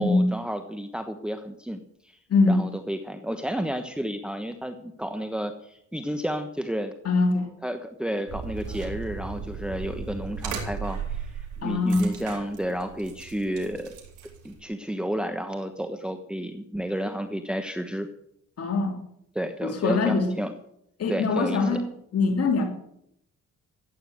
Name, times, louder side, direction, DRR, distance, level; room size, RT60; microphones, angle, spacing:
voice 1, 0.0-1.8 2.5-6.9 7.6-14.0 14.4-18.1 19.3-20.5 21.1-21.8, equal, 5° right, 7 dB, 1.2 m, -31 dB
voice 2, 2.3-2.7 7.0-7.5 11.6-12.1 18.6-19.0 19.6-20.3 21.0-21.9 22.1-22.6, left 3 dB, 55° left, 2 dB, 3.2 m, -23 dB
sound 1, 8.3-14.6, right 6 dB, 80° right, 4.1 m, -36 dB
15.0 x 9.3 x 7.9 m, 0.74 s
cardioid pair, 90°, 30 cm